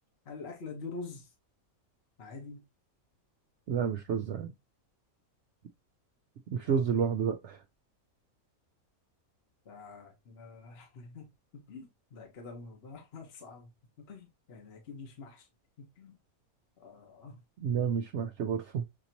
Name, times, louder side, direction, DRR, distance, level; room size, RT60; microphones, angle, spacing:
voice 1, 0.2-1.3 2.2-2.6 6.6-6.8 9.6-13.7 14.0-15.5 15.8-16.2 16.8-17.4, left 4 dB, 50° left, 1.2 m, -46 dB
voice 2, 3.7-4.5 6.5-7.6 17.6-18.8, right 7 dB, 65° right, 0.8 m, -30 dB
6.6 x 2.8 x 2.8 m
omnidirectional pair, 1.5 m